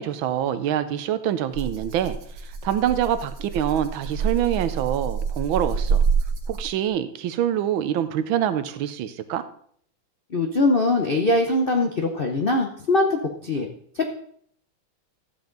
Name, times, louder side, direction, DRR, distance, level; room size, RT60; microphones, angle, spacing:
voice 1, 0.0-2.2 2.6-6.0 6.5-9.4, right 10 dB, 75° right, 12 dB, 1.5 m, -25 dB
Rattle (instrument), 1.5-6.9, right 5 dB, 60° right, 1.9 m, -27 dB
voice 2, 10.3-13.7, left 2 dB, 60° left, 3 dB, 0.5 m, -22 dB
13.0 x 7.5 x 3.9 m, 0.63 s
omnidirectional pair, 2.2 m